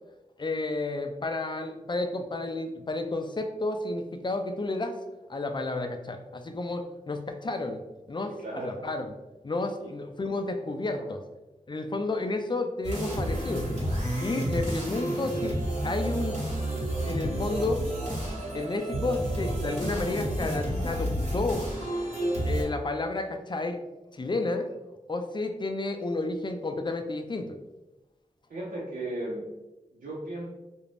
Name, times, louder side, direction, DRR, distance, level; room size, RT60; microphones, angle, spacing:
voice 1, 0.4-5.0 5.3-7.8 8.1-9.1 9.4-11.2 11.7-13.7 14.2-15.6 15.8-16.4 17.0-17.9 18.5-21.7 22.4-23.8 24.1-24.7 25.1-27.6, left 2 dB, 35° left, 6 dB, 0.4 m, -31 dB
voice 2, 8.4-8.8 9.8-9.9 10.9-11.1 14.3-14.6 28.5-29.4 29.9-30.5, right 1 dB, 85° right, -6 dB, 0.5 m, -36 dB
sound 1, 12.8-22.6, right 1 dB, 55° right, 1.2 m, -30 dB
2.4 x 2.1 x 3.2 m, 1.1 s
cardioid pair, 40°, 14 cm